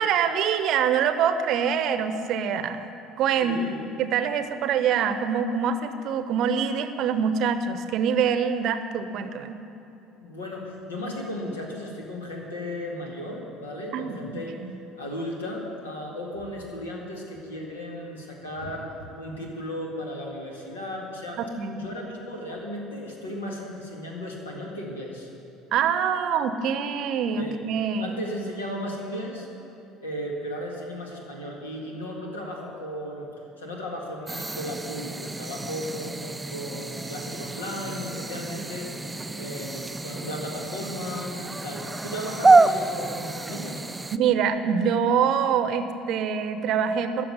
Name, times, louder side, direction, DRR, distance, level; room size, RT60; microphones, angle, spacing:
voice 1, 0.0-2.9 3.2-3.6 4.0-9.6 13.9-14.7 21.4-21.9 25.7-28.2 44.1-47.2, right 7 dB, 50° right, 10 dB, 0.7 m, -25 dB
voice 2, 3.4-3.8 10.2-14.6 15.0-21.4 21.7-25.3 27.4-27.6 28.0-29.5 30.0-33.3 33.6-39.0 39.4-43.9, equal, 80° left, -1 dB, 2.0 m, -35 dB
sound 1, 34.3-44.2, right 3 dB, 15° right, 0.4 m, -27 dB
13.5 x 5.9 x 9.4 m, 3.0 s
figure-of-eight pair, 60°, 0 cm